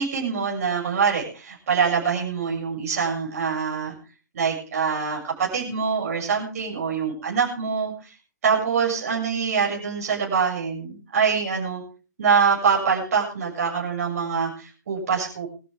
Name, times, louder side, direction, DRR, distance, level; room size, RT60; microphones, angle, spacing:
voice 1, 0.0-3.9 4.3-8.1 8.4-11.8 12.2-15.5, right 6 dB, 50° right, -2 dB, 7.1 m, -24 dB
23.0 x 13.5 x 3.6 m, 0.35 s
figure-of-eight pair, 125°, 10 cm